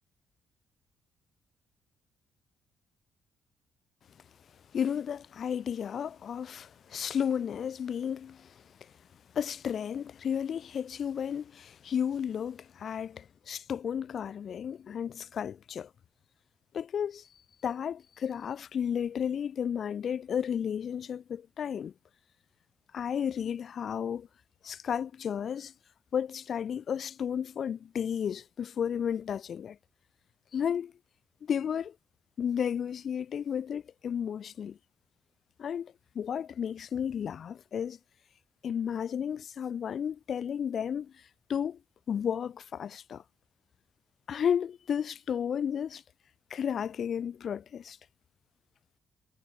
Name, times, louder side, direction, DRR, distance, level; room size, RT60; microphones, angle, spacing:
voice 1, 4.7-8.9 9.3-15.9 16.7-17.3 17.6-21.9 22.9-24.3 24.6-25.7 26.1-29.8 30.5-30.9 31.4-31.9 32.4-34.8 35.6-38.0 38.6-41.2 41.5-41.8 42.1-43.2 44.3-46.0 46.5-48.0, left 8 dB, 55° left, 0.5 m, -33 dB
cardioid pair, 90°, 0 cm